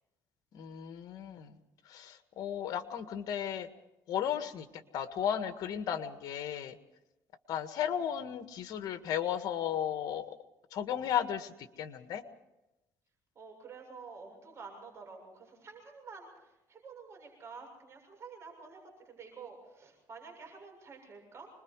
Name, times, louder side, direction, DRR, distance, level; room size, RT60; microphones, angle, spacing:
voice 1, 0.5-1.6 1.9-3.7 4.1-6.8 7.5-10.3 10.7-11.5 11.8-12.2, left 9 dB, 65° left, 9 dB, 1.7 m, -35 dB
voice 2, 13.4-18.8 19.1-21.5, right 5 dB, 40° right, 1 dB, 7.0 m, -49 dB
26.0 x 21.5 x 4.8 m, 0.96 s
cardioid pair, 105°, 7 cm